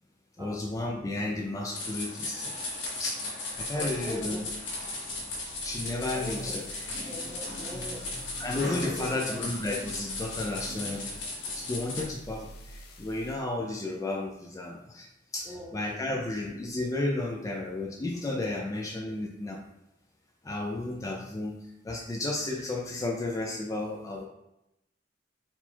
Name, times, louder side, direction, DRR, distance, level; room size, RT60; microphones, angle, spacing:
voice 1, 0.4-2.6 3.0-4.5 5.6-6.6 8.4-11.0 11.5-15.1 15.3-19.6 20.4-24.2, left 2 dB, 20° left, 0 dB, 0.3 m, -33 dB
sound 1, 1.7-12.0, left 2 dB, 75° left, 1.5 m, -36 dB
sound 2, 3.5-13.4, right 1 dB, 55° left, 0.6 m, -49 dB
voice 2, 3.7-4.4 6.1-6.6 7.1-8.2 8.8-9.4 15.4-15.8, equal, 20° right, -1 dB, 0.7 m, -41 dB
4.2 x 2.3 x 4.2 m, 0.87 s
head